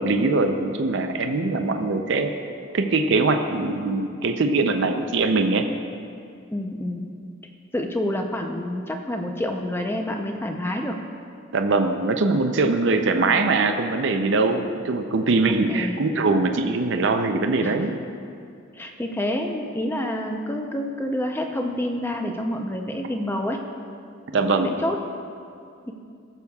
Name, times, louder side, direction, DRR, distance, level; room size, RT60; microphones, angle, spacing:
voice 1, 0.0-2.3 2.7-5.6 11.5-17.9 24.3-24.7, right 3 dB, 60° right, 6 dB, 0.5 m, -22 dB
voice 2, 6.5-7.1 7.7-11.0 15.7-16.0 17.6-17.9 18.7-23.7 24.4-25.0 25.9-26.0, left 1 dB, 10° left, 3 dB, 0.6 m, -28 dB
17.5 x 6.9 x 2.3 m, 2.4 s
head